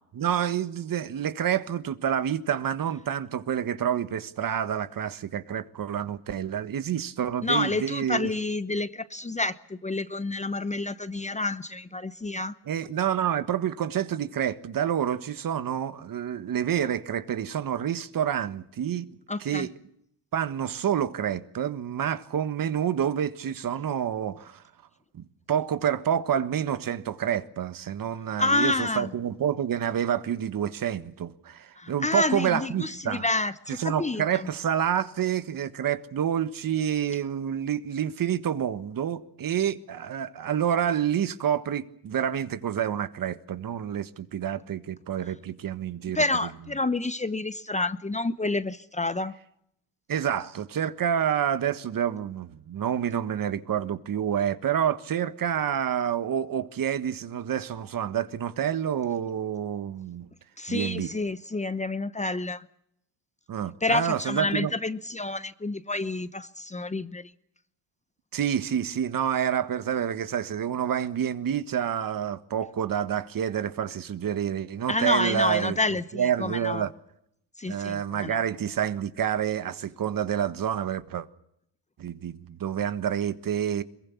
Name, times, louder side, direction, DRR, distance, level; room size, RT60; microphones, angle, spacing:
voice 1, 0.2-8.3 12.7-19.0 19.4-19.7 20.3-24.6 25.1-33.2 33.7-46.2 50.1-60.3 60.7-61.1 63.5-64.7 68.3-75.8 76.1-76.9 77.6-81.3 82.0-83.8, right 9 dB, 45° right, 1.5 m, -28 dB
voice 2, 7.4-12.5 19.3-19.7 28.4-29.1 31.8-34.2 46.1-49.3 60.6-62.7 63.8-67.3 74.9-76.9 77.6-78.4, left 2 dB, 15° left, 0.9 m, -29 dB
22.5 x 22.0 x 7.2 m
cardioid pair, 95°, 46 cm